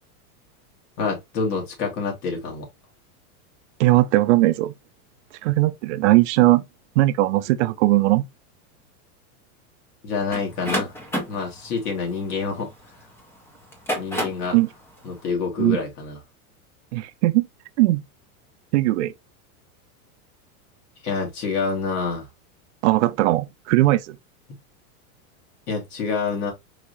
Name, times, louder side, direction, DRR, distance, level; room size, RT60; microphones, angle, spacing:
voice 1, 1.0-2.7 10.0-10.9 11.3-12.7 14.0-14.6 15.0-16.2 21.0-22.3 25.7-26.5, left 4 dB, 80° left, 2.6 m, -27 dB
voice 2, 3.8-4.7 5.4-6.6 7.0-8.3 14.5-14.7 15.6-15.8 16.9-17.5 17.8-18.0 18.7-19.1 22.8-24.2, right 18 dB, 55° right, 0.5 m, -19 dB
sound 1, 10.3-13.0 13.6-14.5, equal, 5° left, 0.3 m, -29 dB
4.7 x 2.8 x 3.1 m
supercardioid pair, 150°, 45 cm